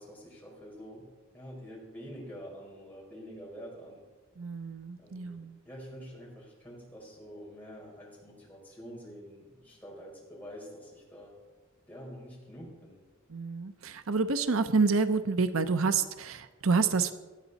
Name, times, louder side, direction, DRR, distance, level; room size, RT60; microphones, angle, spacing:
voice 1, 0.0-4.0 5.0-11.4 11.9-13.0, equal, 10° left, -5 dB, 5.0 m, -47 dB
voice 2, 4.4-5.5 13.3-17.1, right 4 dB, 85° right, 10 dB, 0.8 m, -28 dB
19.0 x 13.0 x 4.2 m, 1.2 s
head